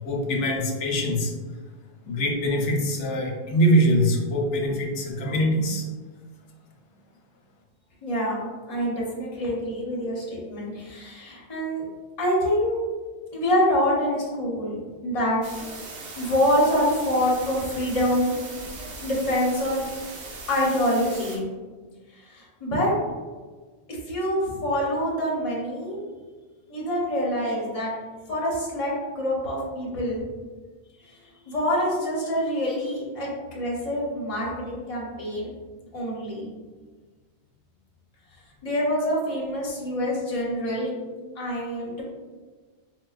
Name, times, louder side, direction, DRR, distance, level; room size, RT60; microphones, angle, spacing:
voice 1, 0.0-1.3 2.1-5.8, equal, 90° left, 1 dB, 0.9 m, -23 dB
voice 2, 8.0-11.8 12.2-12.8 13.3-15.4 16.0-18.3 19.0-19.8 20.5-21.5 22.1-22.9 23.9-26.0 26.7-27.9 28.3-30.2 31.2-35.5 35.9-36.5 38.6-41.0 41.4-42.0, equal, 35° left, -5 dB, 0.8 m, -26 dB
sound 1, 15.4-21.4, right 3 dB, 75° right, 0.9 m, -39 dB
4.2 x 2.2 x 2.3 m, 1.4 s
omnidirectional pair, 1.2 m